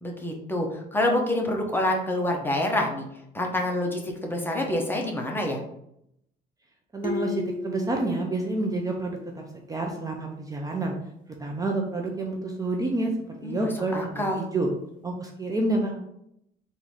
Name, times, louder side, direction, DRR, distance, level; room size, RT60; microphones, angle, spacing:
voice 1, 0.0-3.0 3.3-5.6 13.4-14.5, left 1 dB, 10° left, 1 dB, 0.9 m, -27 dB
voice 2, 6.9-10.9 11.4-13.1 13.4-14.1 14.4-14.7 15.0-16.0, right 2 dB, 20° right, 1 dB, 0.6 m, -28 dB
sound 1, 7.0-9.6, left 2 dB, 50° left, 0.9 m, -35 dB
3.8 x 2.7 x 4.7 m, 0.76 s
cardioid pair, 110°, 17 cm